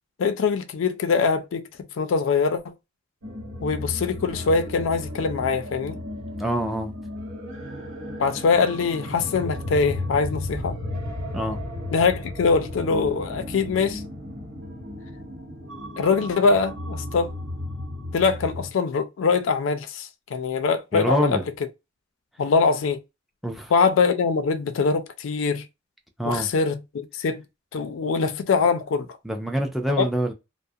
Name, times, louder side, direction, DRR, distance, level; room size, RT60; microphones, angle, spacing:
voice 1, 0.2-1.6 2.0-2.7 3.6-6.0 8.2-10.8 11.9-14.0 16.0-17.3 18.1-21.4 22.4-23.0 23.7-25.7 26.2-27.4 27.7-29.1 30.0-30.1, left 5 dB, 80° left, 0.4 m, -23 dB
sound 1, 3.2-18.7, left 1 dB, 85° right, 1.1 m, -34 dB
voice 2, 6.3-6.9 11.3-11.6 20.9-21.4 23.4-23.7 26.2-26.5 29.2-30.3, right 1 dB, ahead, 0.4 m, -25 dB
2.3 x 2.0 x 2.6 m
head